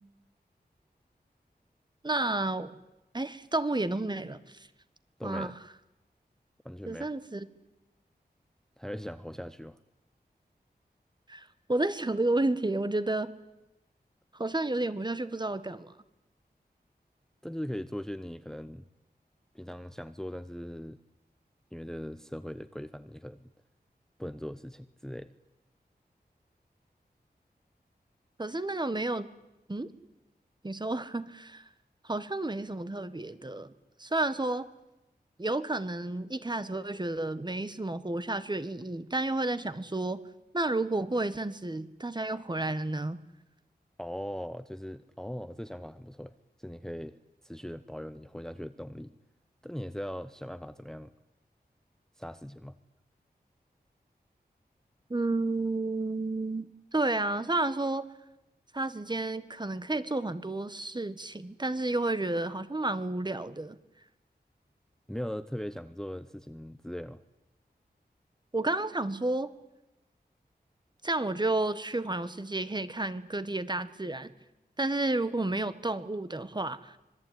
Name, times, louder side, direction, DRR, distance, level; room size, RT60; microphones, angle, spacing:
voice 1, 2.0-2.8 3.1-4.7 5.2-5.5 6.9-7.5 11.3-13.3 14.3-15.9 28.4-29.3 29.7-29.9 30.6-31.6 32.0-33.7 34.0-34.7 35.4-40.2 40.5-43.2 55.1-58.1 58.7-63.8 68.5-69.5 71.0-74.3 74.8-77.0, right 2 dB, 25° right, 13 dB, 1.6 m, -31 dB
voice 2, 5.2-5.6 6.6-7.1 8.8-9.8 17.4-18.8 19.5-21.0 21.7-23.5 24.2-25.3 44.0-46.3 46.6-47.2 47.4-49.1 49.6-51.1 52.2-52.8 65.1-67.2, equal, 5° left, 12 dB, 0.9 m, -39 dB
26.0 x 22.0 x 9.5 m, 0.96 s
wide cardioid pair, 95°, 17 cm